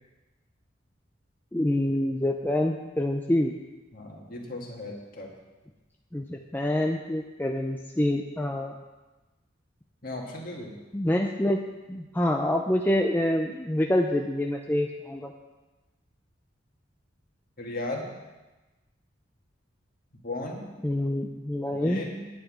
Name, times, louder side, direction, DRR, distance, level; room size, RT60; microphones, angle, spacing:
voice 1, 1.5-3.5 6.1-8.8 10.9-11.6 11.9-15.3 20.8-22.0, left 1 dB, 10° left, 2 dB, 0.5 m, -26 dB
voice 2, 3.9-5.4 10.0-10.8 17.6-18.1 20.2-20.6 21.7-22.3, left 2 dB, 50° left, -1 dB, 2.0 m, -36 dB
9.8 x 5.9 x 8.6 m, 1.1 s
head